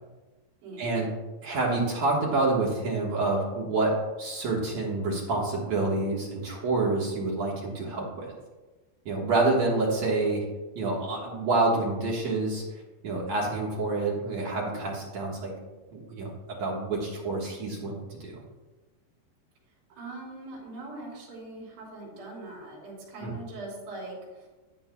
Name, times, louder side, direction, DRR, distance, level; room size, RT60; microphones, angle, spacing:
voice 1, 0.8-1.1 1.4-8.3 9.1-10.4 10.8-12.6 13.0-15.5 15.9-18.4 23.2-23.3, right 3 dB, 60° right, -3 dB, 2.0 m, -28 dB
voice 2, 20.0-24.5, right 2 dB, 80° right, -4 dB, 5.5 m, -41 dB
13.0 x 9.5 x 2.3 m, 1.2 s
omnidirectional pair, 4.9 m